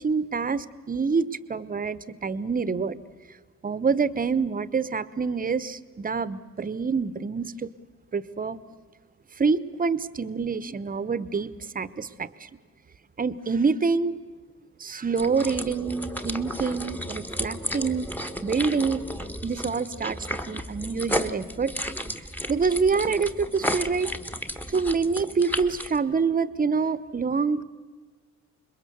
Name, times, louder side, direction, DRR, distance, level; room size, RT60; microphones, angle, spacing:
voice 1, 0.0-3.0 3.6-7.7 8.1-8.6 9.4-12.5 13.2-14.2 14.8-18.1 18.4-19.0 19.4-20.2 20.5-21.7 22.5-24.1 24.7-27.6, right 5 dB, 30° right, 16 dB, 1.0 m, -26 dB
sound 1, 15.2-26.0, equal, 5° left, 1.3 m, -33 dB
26.5 x 22.0 x 7.0 m, 1.4 s
cardioid pair, 90°, 30 cm